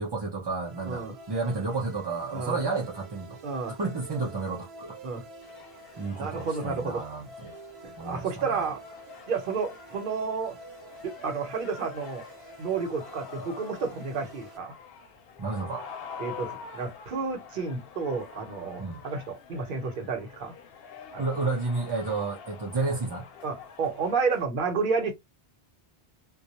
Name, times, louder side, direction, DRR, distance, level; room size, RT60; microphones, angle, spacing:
voice 1, 0.0-3.4 3.7-5.0 6.0-7.5 8.0-8.7 15.4-15.8 18.8-19.0 21.2-23.3, right 3 dB, 40° right, 0.3 m, -31 dB
sound 1, 0.6-14.6, right 2 dB, 80° right, 1.0 m, -48 dB
voice 2, 3.4-3.8 5.0-5.2 6.2-7.1 7.8-8.8 9.3-10.6 11.0-12.2 12.6-14.7 16.2-20.5 21.1-21.2 23.4-25.1, right 5 dB, 60° right, 0.8 m, -31 dB
sound 2, 5.4-24.5, left 6 dB, 70° left, 0.8 m, -47 dB
2.2 x 2.0 x 2.8 m
omnidirectional pair, 1.1 m